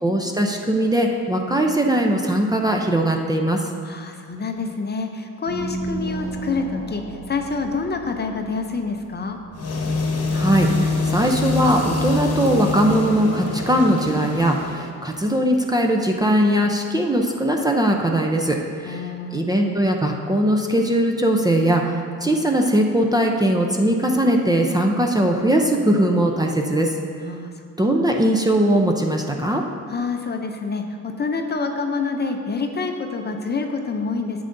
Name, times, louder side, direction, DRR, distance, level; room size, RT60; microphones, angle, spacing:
voice 1, 0.0-3.6 10.3-19.0 19.3-26.9 27.8-29.6, right 1 dB, 10° right, 1 dB, 0.5 m, -20 dB
voice 2, 3.8-9.4 18.8-19.5 27.2-27.5 27.8-27.9 29.9-34.5, left 4 dB, 30° left, 4 dB, 0.6 m, -27 dB
sound 1, 5.5-10.7, right 2 dB, 80° right, 1.3 m, -34 dB
sound 2, 9.5-14.9, left 3 dB, 50° left, 1.1 m, -25 dB
10.0 x 7.7 x 2.6 m, 2.2 s
cardioid pair, 115°, 32 cm